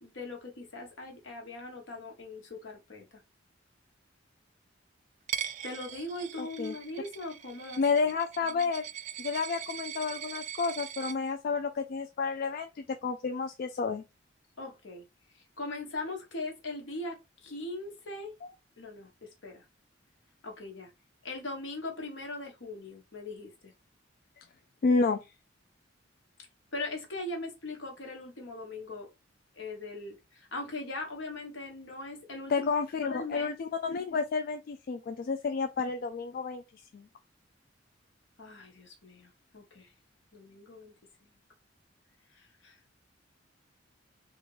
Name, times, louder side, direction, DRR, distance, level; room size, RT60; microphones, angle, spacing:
voice 1, 0.0-3.2 5.6-8.1 14.6-15.0 15.3-18.3 18.8-19.6 20.4-20.9 21.2-23.7 26.7-29.1 29.5-32.7 33.0-33.6 38.4-39.9 40.3-40.9 42.3-42.8, left 2 dB, 75° left, 1.2 m, -40 dB
Coin (dropping), 5.3-11.1, right 10 dB, 40° right, 0.3 m, -41 dB
voice 2, 6.4-6.7 7.8-8.9 9.2-14.0 18.4-18.5 24.8-25.2 32.5-36.6 36.9-37.1, left 4 dB, 50° left, 0.3 m, -30 dB
3.6 x 2.5 x 3.0 m
head